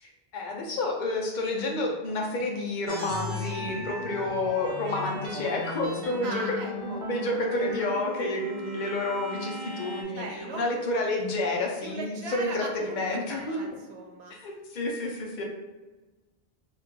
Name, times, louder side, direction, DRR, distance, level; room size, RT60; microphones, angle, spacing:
voice 1, 0.0-10.2 10.5-13.6 14.3-15.4, left 2 dB, 50° left, 0 dB, 0.7 m, -30 dB
sound 1, 2.9-10.0, equal, 35° right, 0.4 m, -37 dB
voice 2, 6.2-7.0 10.0-10.6 11.8-14.4, right 3 dB, 80° right, 3 dB, 0.8 m, -38 dB
3.1 x 2.4 x 3.5 m, 1.2 s
omnidirectional pair, 1.1 m